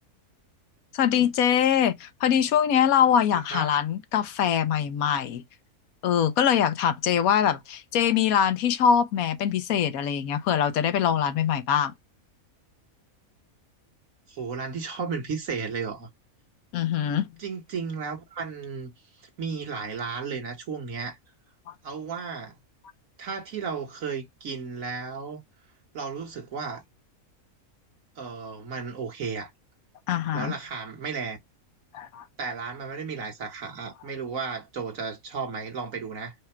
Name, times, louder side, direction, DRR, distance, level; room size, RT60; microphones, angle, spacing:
voice 1, 0.9-5.4 6.0-11.9 16.7-17.3 21.7-21.8 30.1-30.5 31.9-32.2, left 8 dB, 80° left, 1.1 m, -23 dB
voice 2, 14.3-16.1 17.4-18.9 19.2-21.2 21.8-22.6 23.2-25.4 25.9-26.8 28.2-29.5 30.3-31.4 32.4-36.3, right 5 dB, 70° right, 1.7 m, -34 dB
4.8 x 2.3 x 4.3 m
omnidirectional pair, 1.5 m